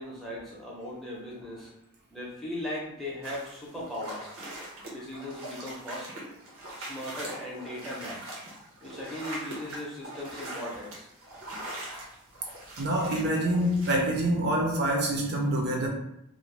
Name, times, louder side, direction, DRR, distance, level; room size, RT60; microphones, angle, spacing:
voice 1, 0.0-1.7 2.1-4.3 4.9-6.2 6.7-8.3 8.8-11.1, left 1 dB, ahead, -6 dB, 0.6 m, -38 dB
sound 1, 3.2-13.9, right 1 dB, 85° right, 0.8 m, -41 dB
voice 2, 12.8-15.9, right 1 dB, 50° right, -1 dB, 0.5 m, -26 dB
2.5 x 2.1 x 3.2 m, 0.79 s
head